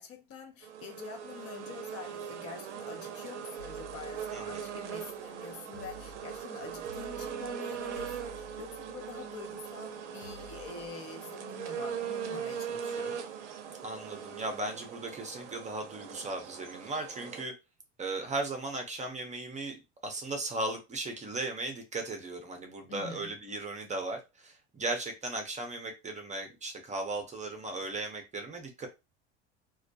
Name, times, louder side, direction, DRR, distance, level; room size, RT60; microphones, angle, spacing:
voice 1, 0.0-13.2 22.9-23.3, left 6 dB, 40° left, 0.6 m, -46 dB
sound 1, 0.6-17.4, right 8 dB, 85° right, 0.5 m, -40 dB
sound 2, 3.6-5.2 5.7-9.7 10.2-11.1, equal, 80° left, 0.8 m, -53 dB
voice 2, 4.3-4.6 13.8-17.5 18.0-28.9, right 2 dB, 20° right, 0.6 m, -37 dB
2.2 x 2.1 x 2.6 m
hypercardioid pair, 80°, 35 cm